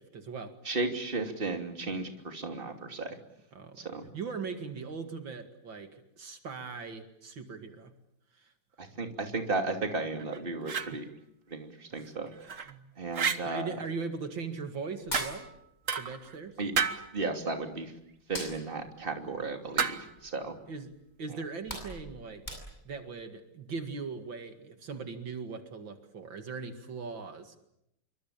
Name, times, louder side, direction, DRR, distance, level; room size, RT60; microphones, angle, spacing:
voice 1, 0.0-0.5 3.5-3.9 4.1-7.9 8.3-8.5 10.9-11.0 11.9-12.1 12.7-12.8 13.4-15.5 15.9-16.6 20.7-20.9 21.2-22.4 22.8-27.6, right 5 dB, 70° right, 7 dB, 2.8 m, -40 dB
voice 2, 0.6-3.2 3.8-4.1 8.8-11.1 11.5-12.3 13.0-13.7 16.6-16.7 17.1-17.9 18.3-20.6, right 3 dB, 25° right, 5 dB, 3.0 m, -34 dB
sound 1, 10.2-10.9 12.3-12.7 13.1-13.4 15.1-15.5 15.9-16.3 16.7-17.1 19.8-20.2, right 6 dB, 45° right, 1.6 m, -31 dB
Hands, 15.0-16.2 16.5-17.7 18.1-20.5 20.9-21.0 21.4-23.0, left 1 dB, 20° left, 7.9 m, -42 dB
27.0 x 24.5 x 8.7 m, 0.81 s
omnidirectional pair, 2.2 m